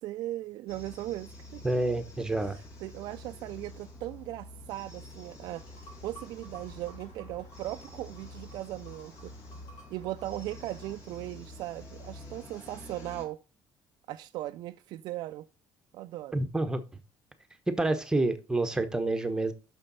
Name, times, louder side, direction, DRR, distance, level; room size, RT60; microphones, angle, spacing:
voice 1, 0.0-1.6 2.4-5.6 6.0-9.3 9.9-13.4 14.1-15.5 15.9-16.4, right 15 dB, 70° right, 0.4 m, -38 dB
sound 1, 0.7-13.3, left 1 dB, 50° left, 2.8 m, -48 dB
voice 2, 1.6-2.6 16.3-16.8 17.7-19.5, right 2 dB, 10° right, 1.0 m, -28 dB
sound 2, 5.5-10.9, right 1 dB, 70° left, 3.4 m, -55 dB
6.7 x 6.2 x 5.5 m
cardioid pair, 145°, 7 cm